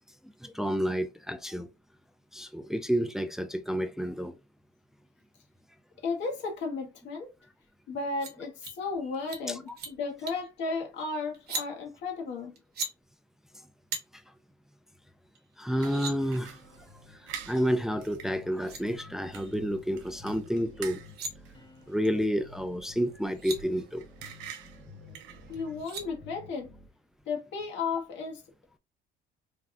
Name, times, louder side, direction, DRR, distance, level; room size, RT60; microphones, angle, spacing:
voice 1, 0.4-1.7 2.3-4.4 9.5-9.6 15.6-16.6 17.2-21.0 21.9-24.1, equal, ahead, 0.3 m, -30 dB
voice 2, 6.0-7.3 7.9-12.5 25.5-26.7 27.3-28.4, left 4 dB, 70° left, 1.0 m, -34 dB
sound 1, 8.2-8.3 8.6-8.8 9.1-9.4 9.7-9.9 10.3-10.5 11.3-11.7 12.6-12.9 13.9-14.0 15.3-15.4 15.7-16.1 18.2-18.3 18.5-18.8 20.9-21.3 23.0-23.1 23.2-23.6 25.5-26.1, right 3 dB, 55° right, 0.9 m, -37 dB
sound 2, 15.8-25.9, right 8 dB, 80° right, 0.5 m, -48 dB
sound 3, 16.2-26.9, left 4 dB, 25° left, 0.8 m, -53 dB
3.3 x 2.3 x 2.5 m
cardioid pair, 100°, 19 cm